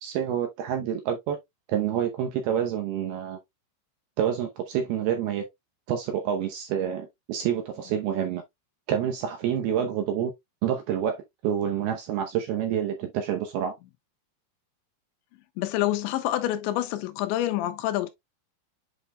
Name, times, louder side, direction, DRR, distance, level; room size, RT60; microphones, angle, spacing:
voice 1, 0.0-1.4 1.7-3.4 4.2-5.4 5.9-8.4 8.9-10.3 10.6-13.8, right 9 dB, 75° right, 2.4 m, -28 dB
voice 2, 15.6-18.1, left 14 dB, 80° left, 3.0 m, -27 dB
8.1 x 5.5 x 2.2 m
omnidirectional pair, 5.4 m